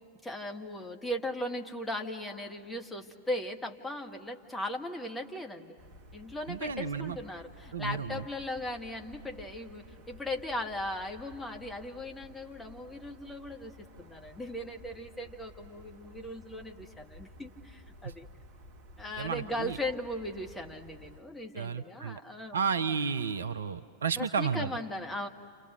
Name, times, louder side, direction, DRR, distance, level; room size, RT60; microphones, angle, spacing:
voice 1, 0.2-5.8 6.1-18.3 19.0-22.7 24.1-25.3, left 1 dB, 10° left, 3 dB, 1.7 m, -38 dB
sound 1, 5.8-21.2, equal, 45° right, 1.5 m, -54 dB
voice 2, 6.5-7.2 7.7-8.2 18.0-18.1 19.2-19.8 21.5-22.2 22.5-24.7, right 6 dB, 70° right, 11 dB, 0.8 m, -32 dB
29.0 x 28.5 x 6.8 m, 2.4 s
figure-of-eight pair, 90°, 0 cm